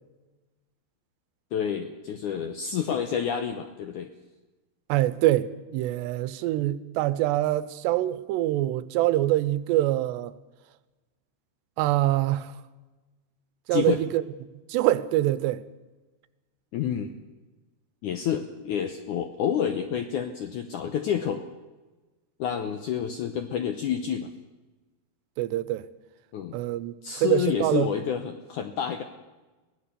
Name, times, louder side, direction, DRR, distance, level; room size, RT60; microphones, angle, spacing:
voice 1, 1.5-4.1 13.7-14.0 16.7-17.1 18.0-21.4 22.4-24.3 26.3-26.6 27.0-29.0, left 8 dB, 80° left, 1.8 m, -29 dB
voice 2, 4.9-10.3 11.8-12.5 13.7-14.2 14.7-15.6 25.4-25.9 26.5-27.9, right 15 dB, 90° right, 3.0 m, -25 dB
22.5 x 17.0 x 6.9 m
omnidirectional pair, 4.8 m